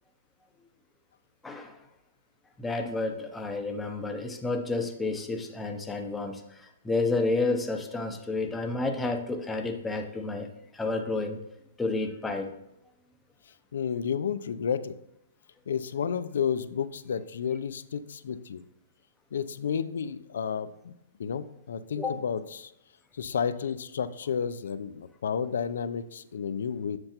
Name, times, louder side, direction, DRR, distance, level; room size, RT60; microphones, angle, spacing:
voice 1, 1.4-1.8 2.6-10.5 10.7-11.4 11.8-12.5 22.0-22.2, left 3 dB, 5° left, 4 dB, 0.5 m, -30 dB
voice 2, 13.7-14.9 15.7-18.6 19.3-20.9 21.2-22.7 23.2-27.0, left 7 dB, 75° left, 13 dB, 0.5 m, -31 dB
7.8 x 6.6 x 2.9 m, 0.84 s
hypercardioid pair, 170°, 0 cm